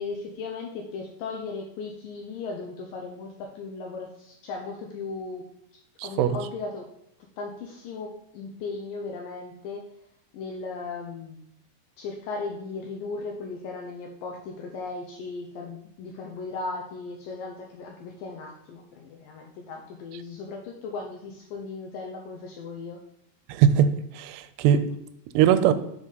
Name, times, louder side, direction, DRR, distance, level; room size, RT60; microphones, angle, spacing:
voice 1, 0.0-5.5 6.0-6.9 7.4-9.9 10.3-11.4 12.0-23.0, left 4 dB, 80° left, 2.0 m, -37 dB
voice 2, 23.5-24.9 25.4-25.7, right 9 dB, 85° right, 2.6 m, -20 dB
7.3 x 5.3 x 4.0 m
omnidirectional pair, 4.7 m